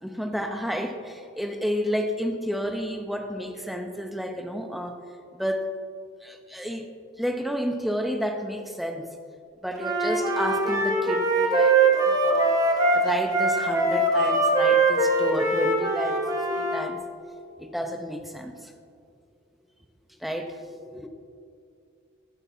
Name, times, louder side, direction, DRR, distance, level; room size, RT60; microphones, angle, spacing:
voice 1, 0.0-5.0 5.3-5.7 6.2-6.9 7.2-9.1 9.6-12.6 12.9-16.2 16.5-17.0 17.6-18.7 20.2-21.1, equal, ahead, 4 dB, 0.7 m, -31 dB
Wind instrument woodwind instrument, 9.8-16.8, right 2 dB, 15° right, 1.3 m, -22 dB
16.0 x 11.5 x 2.8 m, 2.3 s
head